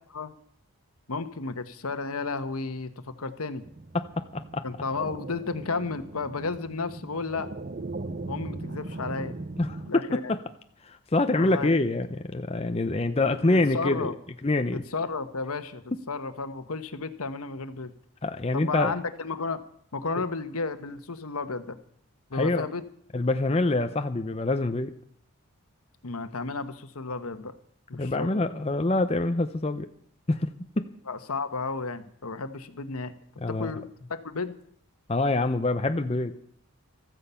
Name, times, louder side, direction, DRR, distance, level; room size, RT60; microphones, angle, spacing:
voice 1, 1.1-3.6 4.6-7.5 8.3-9.4 9.9-10.4 11.3-11.7 13.5-14.1 14.7-17.9 18.5-19.6 19.9-21.8 22.3-22.8 26.0-27.5 27.9-28.3 31.1-33.1 33.5-34.5, left 4 dB, 80° left, 10 dB, 1.1 m, -33 dB
sound 1, 3.7-9.9, right 2 dB, 40° right, 0.6 m, -39 dB
voice 2, 3.9-4.6 9.6-10.4 10.8-14.1 14.4-14.8 18.2-18.9 22.3-22.7 23.1-24.9 28.0-29.9 30.3-30.5 30.8-30.9 33.4-33.7 35.1-36.3, left 2 dB, 25° left, 8 dB, 0.6 m, -26 dB
15.0 x 13.5 x 5.6 m, 0.65 s
head